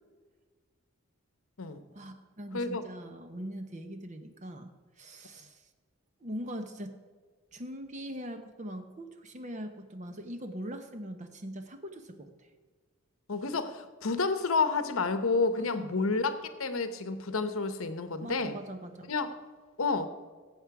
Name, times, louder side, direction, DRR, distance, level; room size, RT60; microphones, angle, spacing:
voice 1, 1.9-5.6 6.2-6.9 7.5-12.5 15.5-16.1 18.2-19.1, equal, 35° right, 7 dB, 0.9 m, -41 dB
voice 2, 13.3-18.5 19.1-19.3 19.8-20.1, left 4 dB, 70° left, 10 dB, 0.9 m, -30 dB
17.0 x 7.5 x 4.8 m, 1.5 s
head